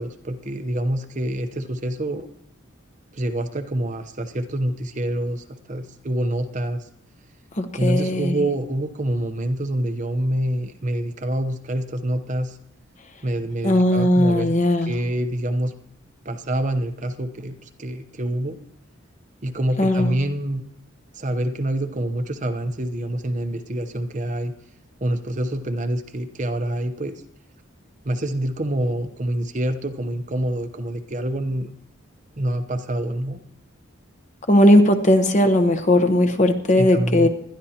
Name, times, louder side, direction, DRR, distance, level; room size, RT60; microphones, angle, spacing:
voice 1, 0.0-2.3 3.1-6.9 7.8-12.6 13.2-14.5 14.8-15.7 16.2-18.6 19.4-20.6 21.1-24.5 25.0-27.2 28.0-31.7 32.4-33.4 36.8-37.3, right 1 dB, 35° right, 7 dB, 0.8 m, -26 dB
voice 2, 7.6-8.4 13.6-14.9 19.8-20.2 34.5-37.3, left 1 dB, 35° left, 7 dB, 1.0 m, -18 dB
20.5 x 12.5 x 2.9 m, 0.73 s
head